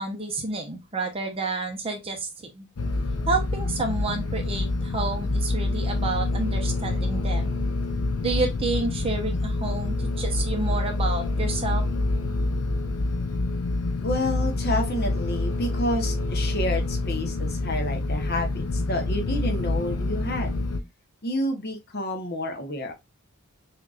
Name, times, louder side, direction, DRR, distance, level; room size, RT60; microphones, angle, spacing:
voice 1, 0.0-2.7 3.3-7.5 8.2-11.8, right 3 dB, 25° right, 0.9 m, -30 dB
sound 1, 2.8-20.8, left 2 dB, 80° left, 0.7 m, -27 dB
sound 2, 7.6-7.7 8.1-8.5 9.0-9.4 9.8-9.9 10.4-10.8 11.4-11.9 12.4-13.0 13.6-14.7, right 1 dB, 30° left, 1.5 m, -41 dB
voice 2, 14.0-20.5 21.2-22.9, left 1 dB, 45° left, 1.0 m, -29 dB
6.1 x 2.8 x 2.4 m
head